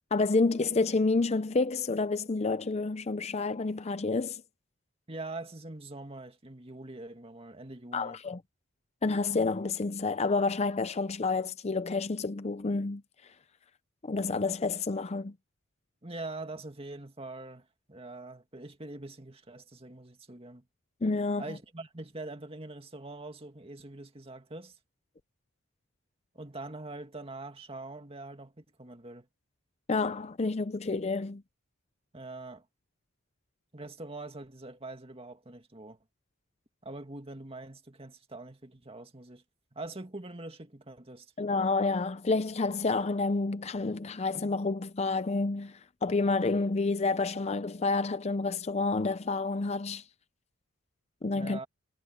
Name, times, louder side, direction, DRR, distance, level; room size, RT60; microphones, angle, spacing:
voice 1, 0.1-4.4 7.9-8.4 9.0-13.0 14.0-15.3 21.0-21.4 29.9-31.4 41.4-50.0 51.2-51.6, left 3 dB, 30° left, 0.5 m, -29 dB
voice 2, 5.1-8.2 16.0-20.7 21.4-24.8 26.3-29.3 32.1-32.7 33.7-36.0 36.8-39.4 39.7-41.3 51.3-51.7, right 2 dB, 30° right, 2.2 m, -43 dB
head